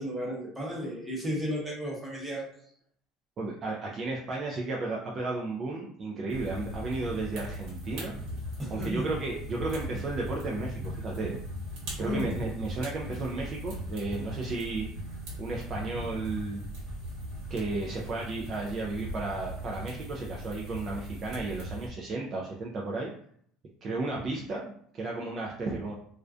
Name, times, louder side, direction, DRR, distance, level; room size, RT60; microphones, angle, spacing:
voice 1, 0.0-2.5 8.6-9.1 12.0-12.3, equal, 5° right, -4 dB, 0.7 m, -33 dB
voice 2, 3.4-8.2 8.7-11.4 12.0-14.9 15.4-16.6 17.5-23.1 23.8-25.9, right 3 dB, 30° right, -2 dB, 0.3 m, -33 dB
sound 1, 6.3-21.9, equal, 55° right, 1.1 m, -39 dB
2.4 x 2.1 x 2.3 m, 0.65 s
cardioid pair, 160°, 0 cm